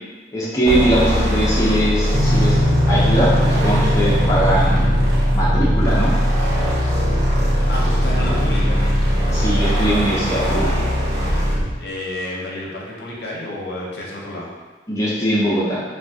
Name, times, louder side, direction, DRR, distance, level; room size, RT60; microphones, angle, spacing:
voice 1, 0.3-2.6 2.9-4.9 5.3-6.1 9.3-10.7 14.9-15.8, right 1 dB, 15° left, -8 dB, 0.5 m, -20 dB
sound 1, 0.7-11.7, equal, 60° right, 0.8 m, -19 dB
sound 2, 2.1-11.9, left 1 dB, 10° right, 0.9 m, -24 dB
voice 2, 7.7-8.9 11.8-14.5, left 1 dB, 65° left, -4 dB, 0.7 m, -30 dB
3.3 x 2.3 x 2.6 m, 1.3 s
head